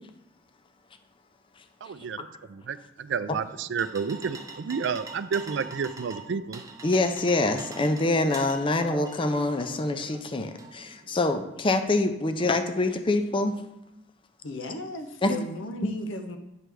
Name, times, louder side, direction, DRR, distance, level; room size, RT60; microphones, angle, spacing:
voice 1, 1.8-2.2 2.5-6.6, right 6 dB, 65° right, 0.4 m, -31 dB
sound 1, 3.3-11.3, right 3 dB, 20° right, 0.6 m, -45 dB
voice 2, 6.8-13.6 15.2-15.5, left 2 dB, 25° left, 0.5 m, -25 dB
voice 3, 14.4-16.4, left 1 dB, 75° left, 0.7 m, -35 dB
9.3 x 3.4 x 6.2 m
head